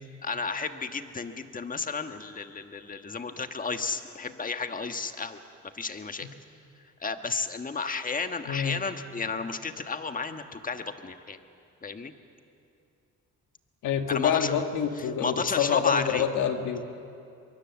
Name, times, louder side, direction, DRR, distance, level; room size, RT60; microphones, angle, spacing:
voice 1, 0.2-5.4 5.7-6.3 7.0-11.4 11.8-12.1 14.1-14.6 15.0-16.3, left 4 dB, 25° left, 7 dB, 1.4 m, -32 dB
voice 2, 8.5-8.8 13.8-16.8, left 8 dB, 85° left, 6 dB, 1.7 m, -27 dB
24.0 x 22.5 x 7.2 m, 2.5 s
cardioid pair, 90°, 30 cm